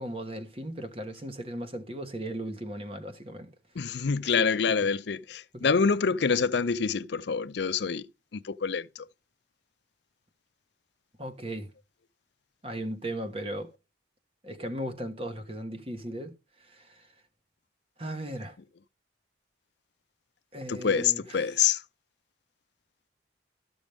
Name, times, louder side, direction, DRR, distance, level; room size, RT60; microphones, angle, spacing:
voice 1, 0.0-3.5 4.3-4.9 5.5-5.7 11.2-11.7 12.6-13.7 14.4-17.1 18.0-18.6 20.5-21.6, right 1 dB, 30° right, 1.2 m, -37 dB
voice 2, 3.8-8.1 8.3-8.9 20.7-21.8, left 6 dB, 60° left, 0.5 m, -26 dB
13.0 x 6.1 x 3.4 m
head